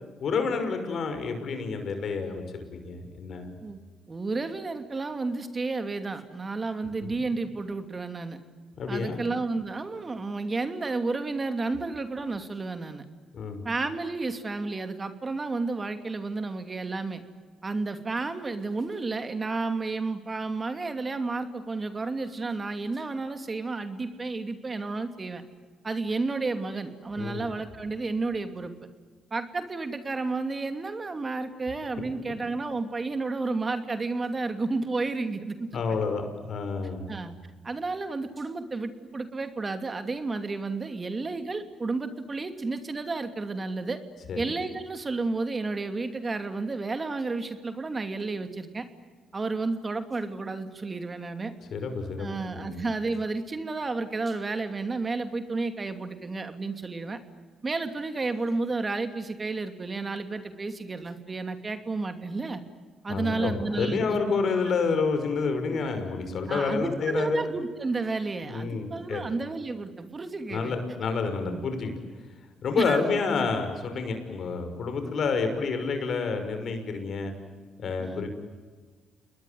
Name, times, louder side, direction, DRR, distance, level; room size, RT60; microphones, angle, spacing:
voice 1, 0.2-2.4 2.7-3.5 8.8-9.2 13.3-13.7 27.2-27.4 35.7-37.1 44.3-44.4 51.7-52.3 52.6-52.8 63.1-67.4 68.4-69.2 70.5-71.9 72.6-77.3 77.8-78.3, left 4 dB, 60° left, 7 dB, 5.9 m, -29 dB
voice 2, 4.1-8.4 8.9-13.0 13.6-17.2 17.6-25.4 25.8-28.7 29.3-36.0 37.1-37.3 37.6-44.0 44.4-48.8 49.3-51.5 52.2-57.2 57.6-62.6 63.0-64.2 66.5-70.8 71.4-71.6 72.8-73.0 78.0-78.2, right 3 dB, 30° right, 8 dB, 2.7 m, -31 dB
29.0 x 21.0 x 9.5 m, 1.5 s
supercardioid pair, 70°, 0 cm